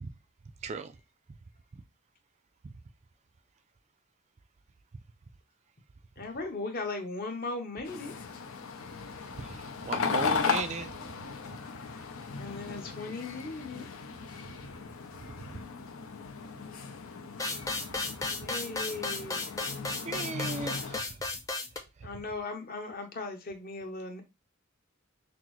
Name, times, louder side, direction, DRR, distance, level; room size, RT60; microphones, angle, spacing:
voice 1, 6.2-8.1 12.4-13.9 18.4-19.5 22.0-24.2, left 3 dB, 45° left, 0.9 m, -37 dB
sound 1, 7.8-21.0, left 5 dB, 80° left, 0.6 m, -37 dB
voice 2, 9.3-10.9 20.0-21.1, right 4 dB, 35° right, 0.3 m, -37 dB
sound 2, 17.4-21.8, left 3 dB, 15° left, 0.6 m, -34 dB
5.9 x 2.0 x 3.0 m
head